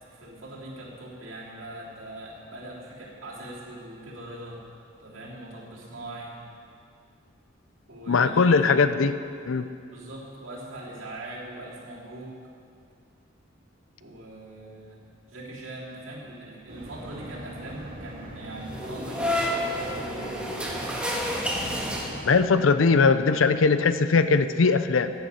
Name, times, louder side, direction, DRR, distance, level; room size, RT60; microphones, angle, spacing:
voice 1, 0.1-4.6 5.0-6.4 7.9-8.9 9.9-12.4 14.0-15.0 15.3-20.3, right 1 dB, 80° right, -6 dB, 3.2 m, -41 dB
voice 2, 8.1-9.2 9.5-9.6 22.2-25.1, left 4 dB, 85° left, 11 dB, 0.6 m, -20 dB
sound 1, 16.7-22.2, right 1 dB, 50° right, 2.3 m, -41 dB
sound 2, 18.6-22.6, equal, 5° right, 1.6 m, -30 dB
15.0 x 9.3 x 5.6 m, 2.3 s
head